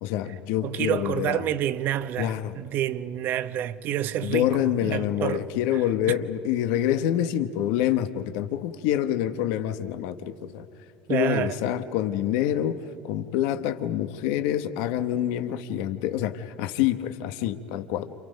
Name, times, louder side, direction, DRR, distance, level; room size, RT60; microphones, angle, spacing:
voice 1, 0.0-1.5 2.2-2.5 4.2-10.6 11.1-18.1, left 11 dB, 70° left, 1.2 m, -26 dB
voice 2, 0.6-4.5 4.8-5.4 11.1-11.6, right 11 dB, 45° right, 0.9 m, -28 dB
30.0 x 28.0 x 5.3 m
cardioid pair, 145°, 4 cm